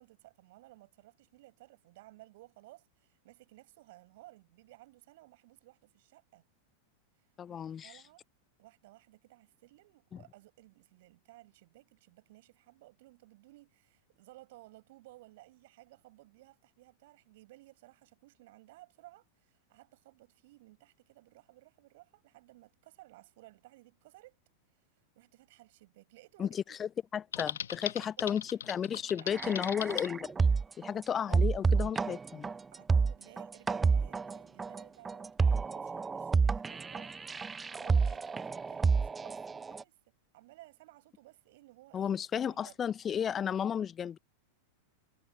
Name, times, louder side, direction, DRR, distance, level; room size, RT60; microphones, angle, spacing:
voice 1, 0.0-6.4 7.5-8.2 8.6-24.4 25.1-26.8 28.0-28.5 29.1-30.0 31.1-31.5 32.7-42.8, right 18 dB, 50° right, 7.6 m, -57 dB
voice 2, 7.4-8.0 10.1-10.2 26.4-28.4 28.7-30.2 30.8-32.5 41.9-44.2, left 8 dB, 25° left, 0.8 m, -33 dB
Typing, 27.3-30.1, left 9 dB, 65° left, 1.7 m, -39 dB
sound 1, 29.3-30.9 31.3-39.8, right 5 dB, 15° right, 0.9 m, -29 dB
figure-of-eight pair, 90°, 0 cm